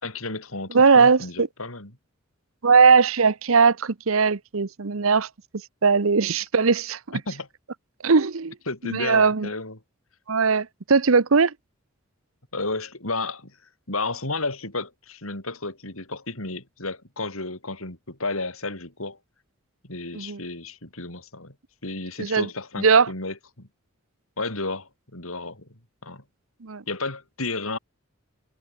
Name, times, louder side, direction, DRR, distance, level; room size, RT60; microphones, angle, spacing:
voice 1, 0.0-1.9 7.1-7.5 8.7-9.8 12.5-13.5 13.9-19.2 19.8-21.5 21.8-23.7 24.4-25.7 26.0-26.2 26.9-27.8, left 3 dB, 85° left, 6.5 m, -32 dB
voice 2, 0.7-1.5 2.6-5.3 5.8-7.2 8.0-8.5 8.8-9.5 10.3-11.5 20.1-20.4 22.2-22.5 22.8-23.1 26.6-26.8, right 5 dB, 75° right, 0.9 m, -19 dB
head